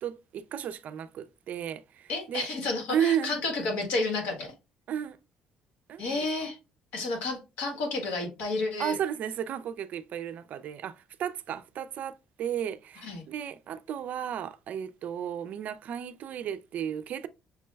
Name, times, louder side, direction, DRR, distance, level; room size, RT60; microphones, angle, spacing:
voice 1, 0.0-2.5 2.9-3.4 4.9-5.2 5.9-6.5 8.8-17.3, right 9 dB, 60° right, 0.4 m, -33 dB
voice 2, 2.1-4.5 6.0-6.6 6.9-8.9 13.0-13.2, left 3 dB, 80° left, 1.6 m, -31 dB
5.8 x 2.2 x 3.2 m
supercardioid pair, 85°, 3 cm